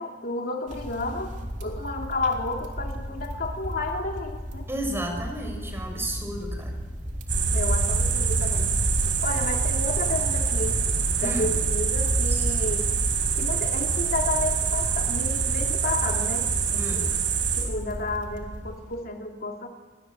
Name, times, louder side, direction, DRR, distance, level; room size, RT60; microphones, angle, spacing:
voice 1, 0.0-1.3 1.6-4.7 7.5-8.8 9.2-10.8 11.2-12.9 13.4-17.1 17.5-19.7, left 2 dB, 55° left, 2 dB, 2.6 m, -31 dB
sound 1, 0.7-19.0, equal, 45° right, 3.4 m, -36 dB
voice 2, 4.7-6.8 11.2-11.5 12.3-12.4 16.8-17.0, right 1 dB, 15° right, 3 dB, 7.1 m, -32 dB
sound 2, 7.3-17.6, right 5 dB, 80° right, 6.4 m, -25 dB
29.5 x 23.0 x 7.9 m, 1.4 s
head